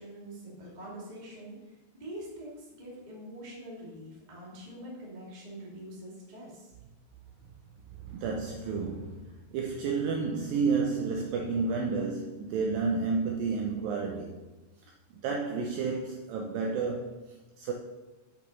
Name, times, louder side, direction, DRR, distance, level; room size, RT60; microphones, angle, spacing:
voice 1, 0.0-1.7 2.0-6.7, right 1 dB, 20° right, 1.2 m, -44 dB
voice 2, 8.0-14.4 15.2-17.7, right 4 dB, 90° right, 2.0 m, -31 dB
8.0 x 6.0 x 5.3 m
omnidirectional pair, 5.0 m